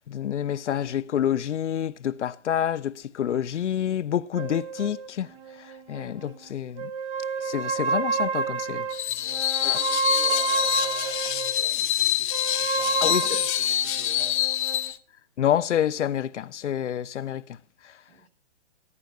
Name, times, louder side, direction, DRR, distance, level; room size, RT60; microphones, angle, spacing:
voice 1, 0.1-5.3 5.6-6.9 7.4-8.9 9.6-9.8 13.0-13.4 15.4-17.4 17.8-17.9, left 10 dB, 80° left, 1.0 m, -28 dB
sound 1, 4.3-6.4 6.8-11.6 12.3-14.9, right 5 dB, 30° right, 2.1 m, -30 dB
Screech, 8.9-15.0, left 11 dB, 45° left, 1.1 m, -26 dB
voice 2, 9.1-14.6 18.1-18.3, right 4 dB, 60° right, 6.8 m, -48 dB
24.5 x 11.0 x 2.4 m
hypercardioid pair, 160°, 35 cm